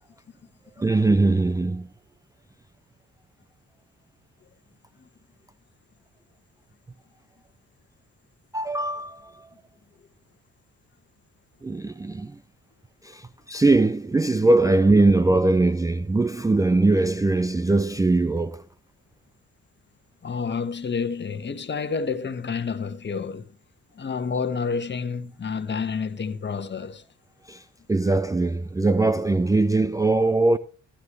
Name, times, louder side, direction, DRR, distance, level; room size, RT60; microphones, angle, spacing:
voice 1, 0.8-1.9 8.5-9.5 11.6-12.4 13.0-18.6 27.5-27.6 27.9-30.6, right 2 dB, 10° right, 0.5 m, -21 dB
voice 2, 20.2-23.5 23.9-27.0, left 5 dB, 35° left, 1.4 m, -29 dB
15.0 x 11.5 x 3.2 m
cardioid pair, 90°, 30 cm